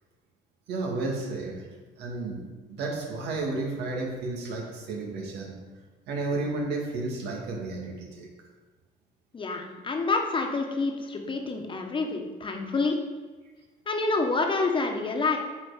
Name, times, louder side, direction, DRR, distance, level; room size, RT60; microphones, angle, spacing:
voice 1, 0.7-2.4 2.7-5.6 6.1-8.3, right 3 dB, 80° right, 0 dB, 2.1 m, -32 dB
voice 2, 9.3-13.0 13.9-15.4, left 3 dB, 30° left, 3 dB, 1.3 m, -27 dB
8.3 x 4.6 x 6.5 m, 1.3 s
cardioid pair, 110°, 17 cm